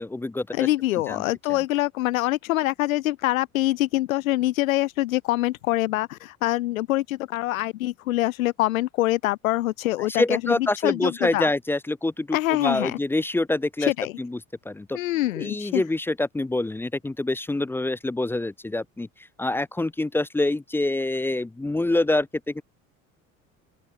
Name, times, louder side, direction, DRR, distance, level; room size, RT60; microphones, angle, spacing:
voice 1, 0.0-0.5 1.1-1.2 10.2-13.9 14.2-14.4 14.7-15.0 15.3-19.1 19.4-22.6, left 2 dB, 5° left, 0.5 m, -26 dB
voice 2, 0.5-11.5 12.3-13.0 13.8-14.1 14.9-15.8, left 17 dB, 70° left, 0.6 m, -25 dB
open air
figure-of-eight pair, 65°, 42 cm